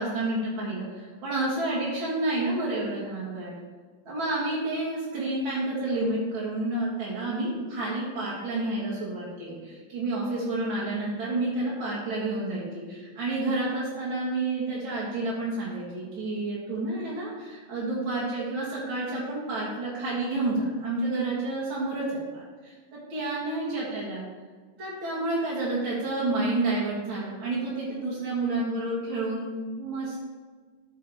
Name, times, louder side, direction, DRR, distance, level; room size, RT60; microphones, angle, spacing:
voice 1, 0.0-3.5 4.1-24.2 24.8-30.2, right 2 dB, 45° right, -6 dB, 1.9 m, -30 dB
13.0 x 5.4 x 3.5 m, 1.5 s
omnidirectional pair, 3.9 m